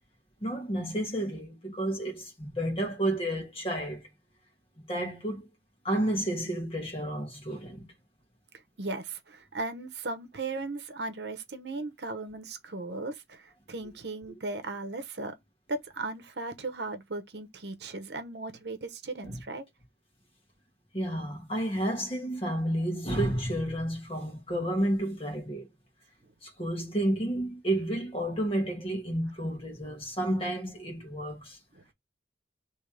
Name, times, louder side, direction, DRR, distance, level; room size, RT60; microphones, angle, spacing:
voice 1, 0.4-4.1 4.8-5.5 5.8-7.9 14.3-14.4 19.2-19.4 20.9-25.7 26.4-31.6, right 1 dB, 30° left, 1.5 m, -31 dB
voice 2, 8.8-15.3 15.7-19.6 31.7-31.9, right 3 dB, 70° right, 0.9 m, -37 dB
3.3 x 3.1 x 4.7 m
head